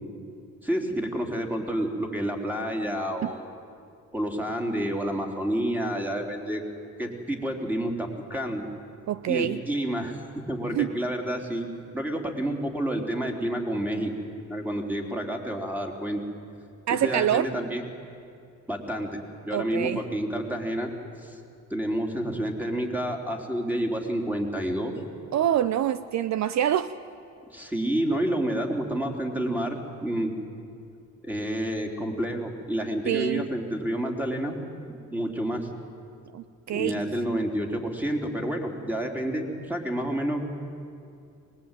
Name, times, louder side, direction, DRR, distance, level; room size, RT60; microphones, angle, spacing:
voice 1, 0.6-3.6 4.1-6.6 7.0-8.6 9.3-11.7 11.9-14.1 14.5-16.2 17.0-17.8 18.7-19.2 19.5-20.9 21.2-21.4 21.7-24.9 27.5-30.3 31.2-34.6 35.1-35.7 36.7-40.5, right 1 dB, 5° right, 2 dB, 3.6 m, -29 dB
voice 2, 9.1-9.6 10.7-10.9 16.9-17.5 19.5-20.0 25.3-26.9 33.1-33.4 36.3-37.0, right 11 dB, 65° right, 14 dB, 0.7 m, -25 dB
23.5 x 20.0 x 9.2 m, 2.5 s
cardioid pair, 90°, 30 cm